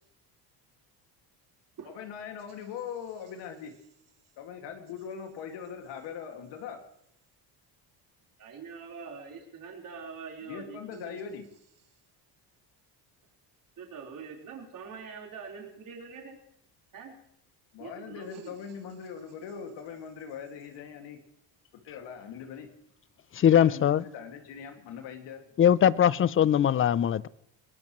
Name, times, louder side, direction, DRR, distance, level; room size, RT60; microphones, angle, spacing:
voice 1, 1.8-3.7 4.4-6.8 10.4-11.5 17.7-21.2 21.8-22.7 23.4-25.4, left 7 dB, 80° left, 2.3 m, -41 dB
voice 2, 8.4-11.2 13.8-16.4 16.9-17.1 17.8-18.6, right 5 dB, 50° right, 4.2 m, -44 dB
voice 3, 23.3-24.0 25.6-27.3, left 9 dB, 30° left, 0.5 m, -21 dB
21.0 x 19.5 x 3.1 m
cardioid pair, 125°, 42 cm